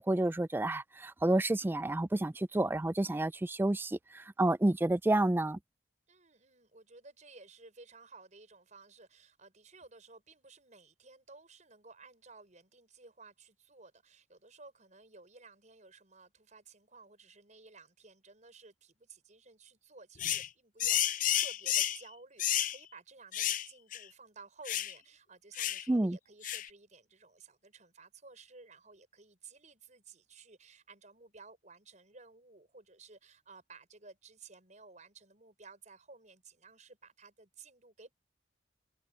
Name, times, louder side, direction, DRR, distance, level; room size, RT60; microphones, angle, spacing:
voice 1, 0.0-5.6 25.9-26.2, right 1 dB, 10° right, 0.3 m, -29 dB
voice 2, 6.1-38.1, right 3 dB, 40° right, 6.4 m, -56 dB
sound 1, 20.2-20.5 20.8-22.0 22.4-22.8 23.3-23.7 23.9-24.0 24.7-24.9 25.6-25.8 26.4-26.7, left 12 dB, 45° left, 0.6 m, -31 dB
open air
head